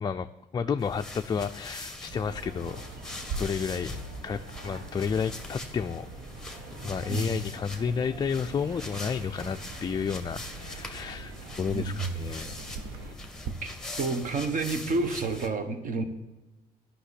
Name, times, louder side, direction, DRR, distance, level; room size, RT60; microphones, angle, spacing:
voice 1, 0.0-2.8 3.4-4.0 4.2-6.1 6.7-11.3 11.6-12.6, left 6 dB, 25° left, 7 dB, 0.4 m, -31 dB
sound 1, 0.8-15.5, left 2 dB, 5° left, 1.3 m, -42 dB
sound 2, 2.1-13.1, right 3 dB, 85° right, 1.3 m, -45 dB
Clock, 3.1-13.5, right 5 dB, 70° right, 1.0 m, -46 dB
voice 2, 14.0-16.0, right 3 dB, 50° right, 8 dB, 1.4 m, -29 dB
10.0 x 5.8 x 8.2 m, 1.1 s
cardioid pair, 110°, 17 cm